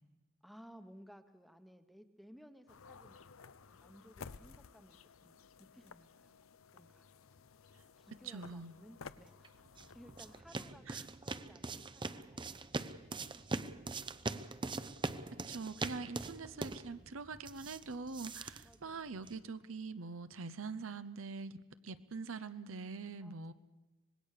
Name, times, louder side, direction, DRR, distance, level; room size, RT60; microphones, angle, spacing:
voice 1, 0.4-6.4 6.7-7.1 8.0-13.4 18.6-19.1 23.2-23.5, equal, ahead, 9 dB, 1.1 m, -60 dB
sound 1, 2.7-10.4, left 5 dB, 80° left, 0.7 m, -55 dB
voice 2, 8.2-8.8 10.9-11.0 15.3-23.5, right 4 dB, 75° right, 12 dB, 0.8 m, -44 dB
sound 2, 9.4-19.5, right 3 dB, 25° right, 0.7 m, -42 dB
25.5 x 19.5 x 6.7 m, 1.1 s
head